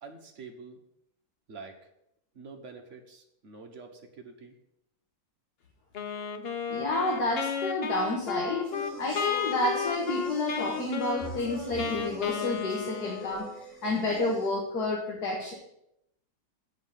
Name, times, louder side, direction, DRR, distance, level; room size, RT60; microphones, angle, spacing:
voice 1, 0.0-0.8 1.5-1.8 2.3-4.5, right 4 dB, 45° right, 3 dB, 1.4 m, -46 dB
Wind instrument woodwind instrument, 5.9-13.6, left 6 dB, 80° left, 0.5 m, -33 dB
voice 2, 6.7-13.5 13.8-15.5, left 2 dB, 60° left, -2 dB, 1.9 m, -30 dB
sound 1, 8.6-14.5, right 1 dB, 30° left, 4.4 m, -44 dB
7.6 x 5.4 x 7.5 m, 0.79 s
omnidirectional pair, 2.0 m